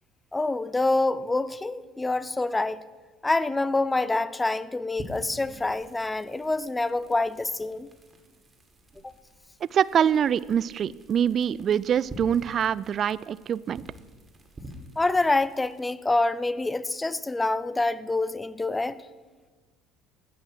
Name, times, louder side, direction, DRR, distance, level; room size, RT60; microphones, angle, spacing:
voice 1, 0.3-2.8 3.2-7.9 9.0-9.1 15.0-19.0, left 2 dB, 15° left, 18 dB, 0.5 m, -26 dB
sound 1, 5.0-15.8, right 1 dB, 25° right, 2.2 m, -48 dB
voice 2, 9.7-13.8, right 8 dB, 45° right, 20 dB, 0.3 m, -24 dB
15.0 x 6.1 x 6.1 m, 1.4 s
hypercardioid pair, 65°, 0 cm